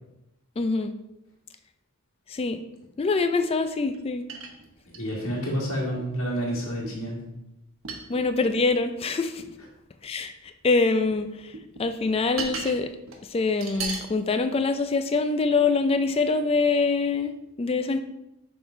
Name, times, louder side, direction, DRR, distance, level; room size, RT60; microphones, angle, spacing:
voice 1, 0.6-0.9 2.3-2.6 3.0-4.2 8.1-9.4 10.0-11.5 11.8-12.9 13.3-18.0, left 3 dB, 25° left, 9 dB, 0.3 m, -24 dB
sound 1, 3.9-4.0 4.3-5.4 6.0-6.1 6.5-7.1 7.8-8.6 9.4-9.5 10.7-11.2 11.5-12.8 13.1-13.2 13.6-14.1 14.7-14.8, right 4 dB, 70° right, 1.0 m, -36 dB
voice 2, 4.9-7.2, equal, 70° left, -4 dB, 1.7 m, -29 dB
6.7 x 3.7 x 4.7 m, 0.88 s
head